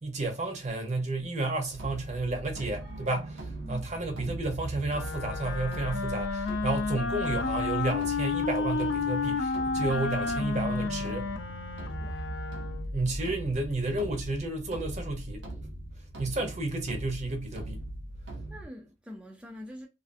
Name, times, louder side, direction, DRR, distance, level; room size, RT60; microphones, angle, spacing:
voice 1, 0.0-11.3 12.9-15.4 16.2-17.8, right 2 dB, 40° right, 0.7 m, -32 dB
sound 1, 1.7-18.7, right 1 dB, 70° right, 0.7 m, -40 dB
Wind instrument woodwind instrument, 4.9-13.0, left 4 dB, 75° left, 0.5 m, -31 dB
voice 2, 12.0-12.3 18.5-19.9, left 1 dB, 5° right, 0.4 m, -44 dB
2.4 x 2.4 x 2.5 m
head